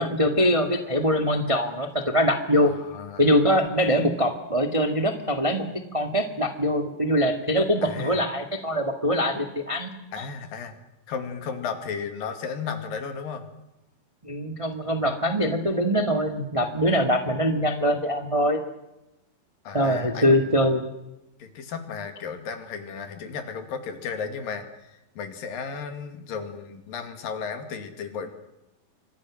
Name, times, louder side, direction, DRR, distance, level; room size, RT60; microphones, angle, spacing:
voice 1, 0.0-2.7 3.2-5.7 5.9-9.9 14.2-18.6 19.7-20.9, equal, 25° right, 5 dB, 0.7 m, -23 dB
voice 2, 2.6-3.3 7.8-8.2 10.1-10.8 11.1-13.4 19.7-20.5 21.4-28.3, left 6 dB, 70° left, 7 dB, 3.9 m, -34 dB
27.5 x 24.0 x 6.3 m, 0.94 s
omnidirectional pair, 4.2 m